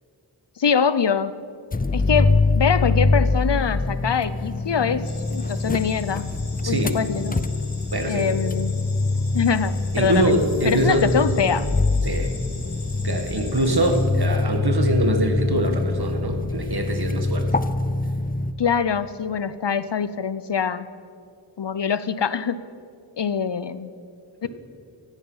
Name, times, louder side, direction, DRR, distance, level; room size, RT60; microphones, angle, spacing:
voice 1, 0.6-1.3 1.9-6.3 6.7-7.5 8.1-8.8 9.3-10.3 10.6-11.7 18.6-20.9 21.6-22.6 23.2-23.9 24.4-24.5, left 6 dB, 60° left, 15 dB, 0.7 m, -24 dB
sound 1, 1.7-18.5, left 3 dB, 20° left, 0.5 m, -24 dB
sound 2, 5.0-14.0, left 2 dB, 85° left, 4.0 m, -42 dB
voice 2, 6.6-7.0 7.9-8.3 9.9-11.2 12.0-12.3 13.0-17.5, right 1 dB, 50° right, 5 dB, 1.8 m, -23 dB
16.5 x 13.5 x 5.6 m, 2.3 s
wide cardioid pair, 65°, 48 cm